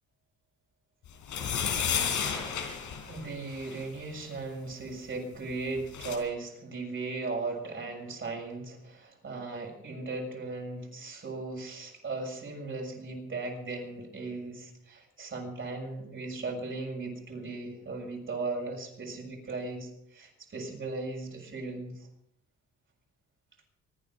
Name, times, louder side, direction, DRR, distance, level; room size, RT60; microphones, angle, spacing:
sound 1, 1.2-3.8 5.5-5.6 5.8-6.2, left 7 dB, 80° left, 3.9 m, -32 dB
voice 1, 3.1-22.1, right 3 dB, 40° right, 0 dB, 7.1 m, -37 dB
24.5 x 10.0 x 5.7 m, 0.77 s
cardioid pair, 90°, 30 cm